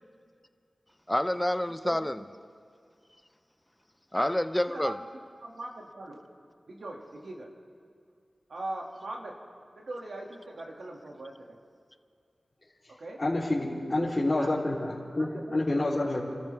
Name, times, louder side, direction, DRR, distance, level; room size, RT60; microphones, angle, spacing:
voice 1, 1.1-2.2 4.1-4.9, left 1 dB, 10° left, 10 dB, 0.6 m, -28 dB
voice 2, 4.7-5.1 5.4-6.2 6.7-7.5 8.5-9.3 9.8-11.6 13.0-13.2 13.7-14.8 15.2-15.6 16.0-16.1, right 2 dB, 85° right, 0 dB, 2.2 m, -40 dB
voice 3, 13.2-16.2, left 2 dB, 35° left, -9 dB, 3.3 m, -28 dB
29.0 x 13.5 x 3.5 m, 2.3 s
wide cardioid pair, 60°, 0 cm